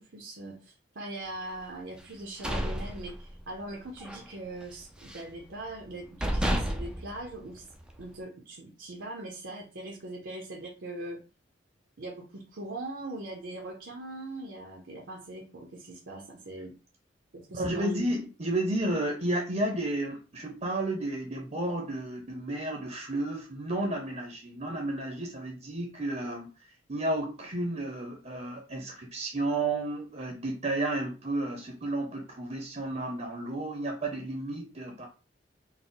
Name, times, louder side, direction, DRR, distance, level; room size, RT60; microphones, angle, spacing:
voice 1, 0.0-7.6 8.0-11.2 12.0-16.7 17.3-17.9, right 2 dB, 75° right, 0.8 m, -41 dB
sound 1, 2.1-3.7 4.0-4.3 4.6-5.4 5.8-5.9 6.2-8.0, equal, 5° right, 0.4 m, -32 dB
voice 2, 17.5-26.5 26.9-35.1, right 1 dB, 40° right, 0.7 m, -32 dB
4.1 x 2.2 x 3.9 m
head